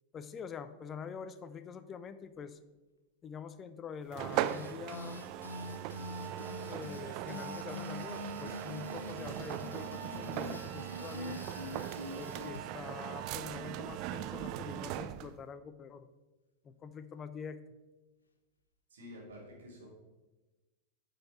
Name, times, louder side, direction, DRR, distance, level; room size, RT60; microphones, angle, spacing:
voice 1, 0.1-2.6 3.2-5.2 6.7-11.6 12.1-16.1 16.6-17.6, left 6 dB, 25° left, 12 dB, 0.5 m, -45 dB
sound 1, 4.1-15.4, right 13 dB, 40° right, 0.3 m, -39 dB
sound 2, 4.3-12.6, left 4 dB, 75° left, 0.7 m, -45 dB
voice 2, 18.9-19.9, left 1 dB, 65° right, -3 dB, 2.8 m, -49 dB
8.8 x 5.6 x 4.1 m, 1.1 s
figure-of-eight pair, 90°, 0 cm